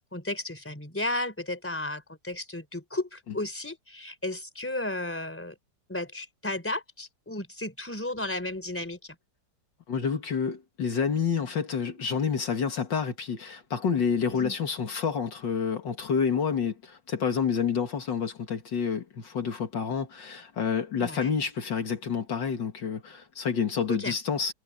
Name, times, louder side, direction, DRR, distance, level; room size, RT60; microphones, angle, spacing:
voice 1, 0.0-5.5 5.9-9.1 14.3-14.5 21.0-21.3 23.9-24.1, left 2 dB, 5° left, 3.4 m, -34 dB
voice 2, 9.9-24.5, left 6 dB, 70° left, 2.5 m, -28 dB
omnidirectional pair, 2.1 m